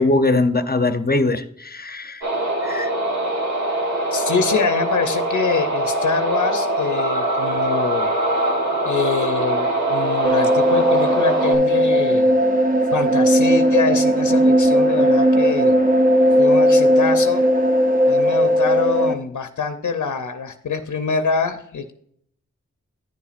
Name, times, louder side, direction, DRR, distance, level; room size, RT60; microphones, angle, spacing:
voice 1, 0.0-2.3 2.6-2.9, left 2 dB, 30° left, 10 dB, 0.7 m, -21 dB
sound 1, 2.2-11.5, right 1 dB, 65° right, 1.5 m, -22 dB
voice 2, 4.1-8.1 8.8-12.3 12.9-15.7 16.4-17.4 18.1-21.9, left 5 dB, 85° left, 8 dB, 0.6 m, -24 dB
sound 2, 10.2-19.1, equal, 30° right, 0.6 m, -17 dB
9.7 x 7.0 x 2.5 m, 0.67 s
wide cardioid pair, 60°, 29 cm